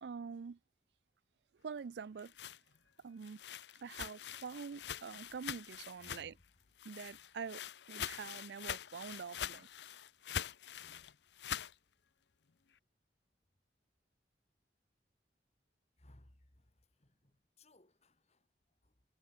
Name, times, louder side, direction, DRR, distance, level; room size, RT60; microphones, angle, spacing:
voice 1, 0.0-0.6 1.6-2.3 3.0-3.4 3.8-6.3 6.8-7.6 7.9-9.7, right 6 dB, 70° right, 0.4 m, -45 dB
sound 1, 2.0-6.5 6.8-11.7, left 9 dB, 75° left, 0.6 m, -44 dB
voice 2, 5.9-7.0 10.8-11.1 16.0-19.0, left 1 dB, 35° left, 2.1 m, -65 dB
head